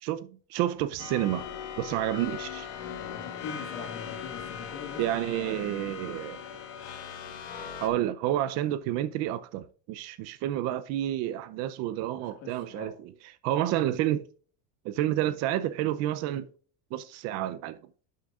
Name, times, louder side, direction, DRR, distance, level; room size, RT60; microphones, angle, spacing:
voice 1, 0.0-1.5 1.8-2.7 5.0-6.4 7.8-14.2 14.8-16.5 16.9-17.8, right 13 dB, 50° right, 0.6 m, -30 dB
sound 1, 1.0-7.9, left 8 dB, 80° left, 2.0 m, -39 dB
voice 2, 3.0-5.0 5.3-5.8 12.4-12.9, left 4 dB, 55° left, 1.9 m, -42 dB
11.5 x 6.4 x 2.4 m
cardioid pair, 165°, 34 cm